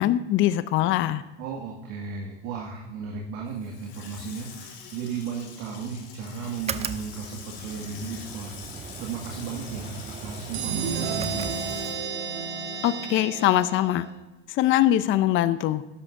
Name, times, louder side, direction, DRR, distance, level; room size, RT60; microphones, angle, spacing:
voice 1, 0.0-1.2 12.8-14.1 14.5-15.8, left 13 dB, 40° left, 13 dB, 0.6 m, -22 dB
voice 2, 1.4-8.6 9.0-11.7, right 5 dB, 65° right, -1 dB, 2.1 m, -35 dB
Water tap faucet / Sink (filling or washing), 3.5-13.2 13.5-13.6, left 6 dB, 75° left, 3.1 m, -45 dB
sound 1, 6.6-12.2, right 7 dB, 20° right, 0.5 m, -38 dB
sound 2, 10.5-14.1, right 6 dB, 80° right, 1.8 m, -32 dB
12.5 x 11.0 x 2.6 m, 1.1 s
supercardioid pair, 105°, 30 cm